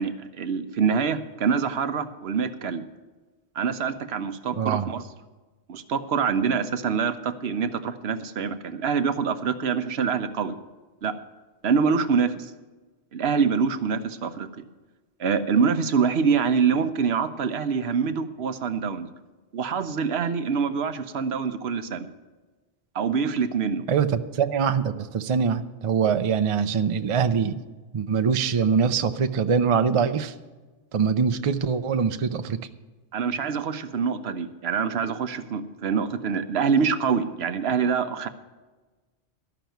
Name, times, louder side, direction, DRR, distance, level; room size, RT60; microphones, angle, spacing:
voice 1, 0.0-2.8 3.6-5.0 5.7-10.6 11.0-11.2 11.6-12.5 13.1-14.6 15.2-19.1 19.5-22.1 22.9-23.8 33.1-38.3, right 6 dB, 70° right, 10 dB, 1.0 m, -25 dB
voice 2, 4.6-4.9 23.9-27.6 27.9-30.3 30.9-32.6, right 6 dB, 40° right, 9 dB, 0.5 m, -23 dB
13.0 x 5.9 x 9.1 m, 1.2 s
omnidirectional pair, 1.1 m